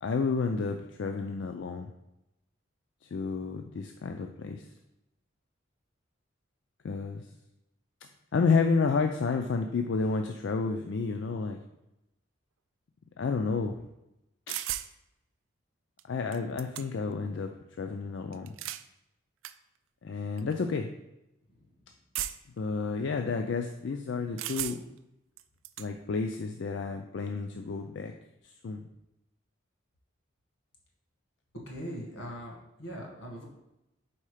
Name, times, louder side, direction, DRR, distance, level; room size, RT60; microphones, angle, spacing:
voice 1, 0.0-1.9 3.0-4.7 6.8-7.3 8.3-11.6 13.2-13.8 14.5-14.6 16.0-17.5 17.8-18.5 20.0-20.9 22.6-24.8 25.8-28.1 28.6-28.9, left 4 dB, 60° left, 4 dB, 0.4 m, -30 dB
sound 1, 14.5-14.9 16.0-16.1 16.3-17.1 18.3-18.9 19.4-19.5 20.4-20.5 22.1-22.6 24.4-25.0 25.4-25.9, right 13 dB, 70° right, 0.3 m, -36 dB
voice 2, 31.6-33.4, equal, 80° left, -1 dB, 1.7 m, -41 dB
4.6 x 4.3 x 4.9 m, 0.91 s
head